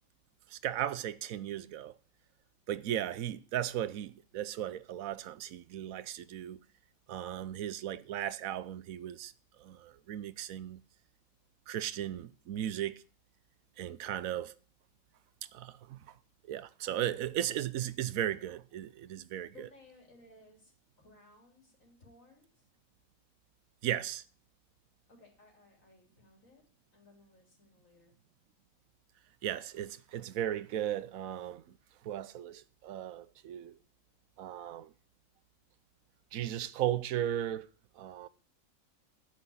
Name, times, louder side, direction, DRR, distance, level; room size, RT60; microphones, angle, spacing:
voice 1, 0.5-1.9 2.7-6.6 7.1-9.3 9.6-10.8 11.7-13.0 13.8-14.5 15.5-16.2 16.5-19.7 23.8-24.2 29.4-31.8 32.0-33.7 34.4-34.9 36.3-37.7 38.0-38.3, right 11 dB, 90° right, 1.1 m, -36 dB
voice 2, 19.5-20.7 21.0-22.6 25.1-26.6 26.9-28.1, left 2 dB, 75° left, 3.9 m, -60 dB
10.0 x 6.1 x 8.6 m
omnidirectional pair, 1.4 m